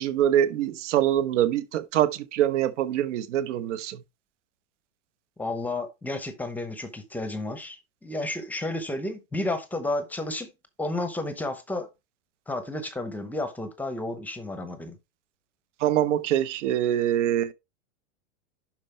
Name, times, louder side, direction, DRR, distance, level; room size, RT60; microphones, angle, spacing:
voice 1, 0.0-4.0 15.8-17.5, right 11 dB, 65° right, 1.1 m, -24 dB
voice 2, 5.4-10.5 10.8-11.9 12.5-15.0, left 2 dB, 5° left, 0.8 m, -32 dB
11.0 x 4.4 x 3.3 m
supercardioid pair, 160°, 39 cm